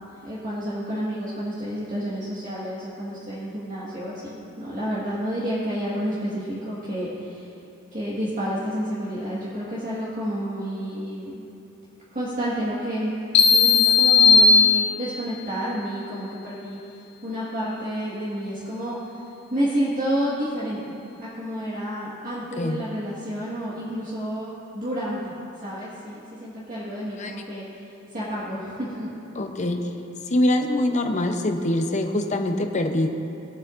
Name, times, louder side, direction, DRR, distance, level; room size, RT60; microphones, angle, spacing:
voice 1, 0.2-7.5 7.9-11.4 12.1-13.1 13.5-16.8 17.2-19.0 19.5-20.9 21.2-25.3 25.6-27.6 28.1-29.1, equal, 35° right, -9 dB, 1.6 m, -30 dB
sound 1, 13.3-15.3, left 5 dB, 50° left, 2.5 m, -16 dB
voice 2, 29.4-29.8 30.3-33.1, left 1 dB, 35° left, 5 dB, 0.7 m, -24 dB
20.0 x 8.0 x 2.5 m, 2.8 s
head